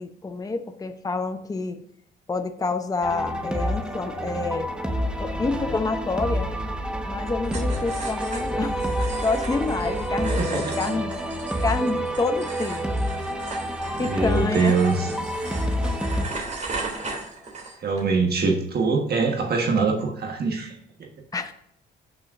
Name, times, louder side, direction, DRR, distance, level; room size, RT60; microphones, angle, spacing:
voice 1, 0.0-1.8 2.3-4.8 5.2-6.5 7.1-8.8 9.2-11.1 11.6-12.8 14.0-14.7 21.3-21.5, left 3 dB, 20° left, 8 dB, 0.7 m, -28 dB
sound 1, 3.0-16.2, equal, 5° right, 1.3 m, -28 dB
sound 2, 7.5-18.0, right 3 dB, 35° right, 2.8 m, -37 dB
voice 2, 10.4-10.8 14.0-15.1 17.8-20.7, right 4 dB, 55° right, 2 dB, 1.4 m, -23 dB
15.5 x 6.2 x 2.5 m, 0.77 s
cardioid pair, 90°, 20 cm